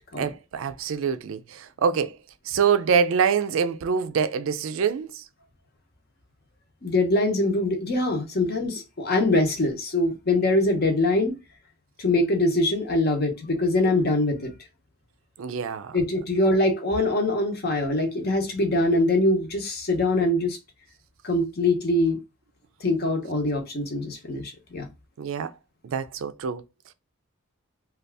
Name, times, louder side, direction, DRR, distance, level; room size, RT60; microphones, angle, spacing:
voice 1, 0.2-2.2 2.4-5.2 15.4-16.0 25.2-25.5 25.8-26.6, right 6 dB, 70° right, 0.4 m, -25 dB
voice 2, 6.8-11.4 12.0-14.5 15.9-20.6 21.2-22.2 22.8-24.9, left 2 dB, 45° left, 0.8 m, -23 dB
2.6 x 2.3 x 3.4 m
head